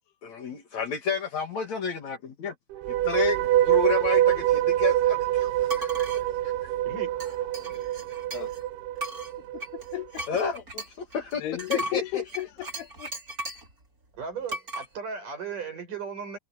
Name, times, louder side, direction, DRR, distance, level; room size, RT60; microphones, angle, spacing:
voice 1, 0.2-2.5 2.9-5.5 5.8-6.1 10.3-10.8 11.1-11.4 11.7-12.0, left 5 dB, 50° left, 3.0 m, -30 dB
sound 1, 2.7-10.0, right 13 dB, 80° right, 2.8 m, -25 dB
sound 2, 5.7-6.2 7.2-8.6 9.0-13.7 14.5-14.9, right 1 dB, 20° right, 4.4 m, -37 dB
voice 2, 6.8-7.2 11.8-11.9 14.1-16.4, right 6 dB, 55° right, 8.5 m, -36 dB
sound 3, 6.9-8.5, left 2 dB, 10° left, 7.3 m, -56 dB
voice 3, 9.5-10.2 11.4-13.1, left 15 dB, 85° left, 3.3 m, -34 dB
omnidirectional pair, 4.5 m